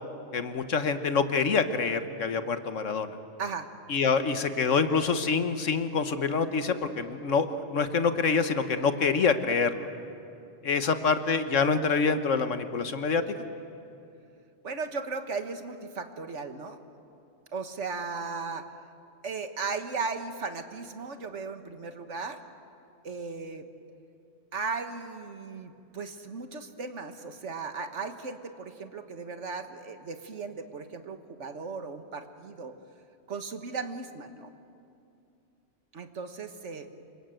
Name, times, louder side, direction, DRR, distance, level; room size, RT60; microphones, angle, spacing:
voice 1, 0.3-3.2 3.9-7.5 7.7-9.9 10.6-13.2, left 5 dB, 75° left, 9 dB, 1.6 m, -26 dB
voice 2, 3.4-3.7 14.6-16.8 17.5-18.7 19.2-22.4 23.0-23.7 24.5-32.7 33.3-34.5 35.9-36.9, right 4 dB, 70° right, 7 dB, 1.7 m, -36 dB
28.0 x 24.5 x 7.8 m, 2.6 s
omnidirectional pair, 1.3 m